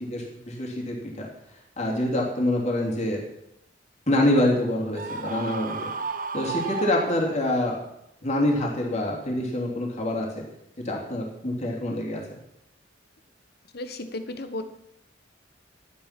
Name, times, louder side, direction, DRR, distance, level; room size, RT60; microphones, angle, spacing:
voice 1, 0.1-1.3 1.8-3.2 4.1-5.9 6.3-7.8 8.2-10.4 10.8-12.2, left 1 dB, 35° left, -1 dB, 2.9 m, -26 dB
Screaming, 4.9-7.6, right 4 dB, 45° right, 0.8 m, -33 dB
voice 2, 13.7-14.6, left 1 dB, 55° left, 9 dB, 1.1 m, -34 dB
11.5 x 9.4 x 5.9 m, 0.79 s
head